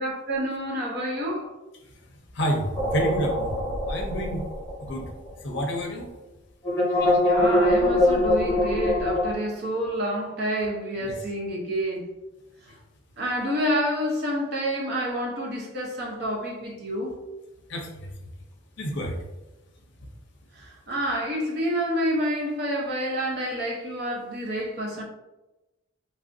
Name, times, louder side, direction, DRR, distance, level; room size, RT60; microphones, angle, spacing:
voice 1, 0.0-1.5 7.2-12.1 13.2-17.2 20.6-25.0, equal, 50° right, -1 dB, 0.7 m, -28 dB
voice 2, 2.3-3.6 3.9-4.4 4.9-5.1 5.4-6.1 11.0-11.1 17.7-18.1 18.8-19.2, equal, 55° left, 1 dB, 0.6 m, -29 dB
sound 1, 2.7-5.3 5.5-5.6 6.6-9.3, left 1 dB, 15° left, 0.9 m, -23 dB
3.3 x 2.5 x 2.5 m, 1.0 s
head